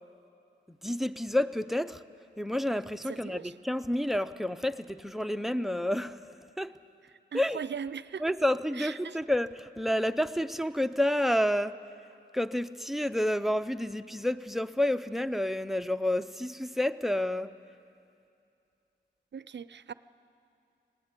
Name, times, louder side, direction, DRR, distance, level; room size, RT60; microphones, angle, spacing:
voice 1, 0.8-2.0 2.4-6.2 6.6-6.7 7.3-7.6 8.2-11.8 12.3-17.5, left 1 dB, ahead, 13 dB, 0.5 m, -29 dB
voice 2, 3.1-3.5 7.3-8.2 8.8-9.2 19.3-19.9, right 7 dB, 70° right, 16 dB, 0.4 m, -39 dB
20.0 x 18.5 x 8.2 m, 2.6 s
wide cardioid pair, 75°, 19 cm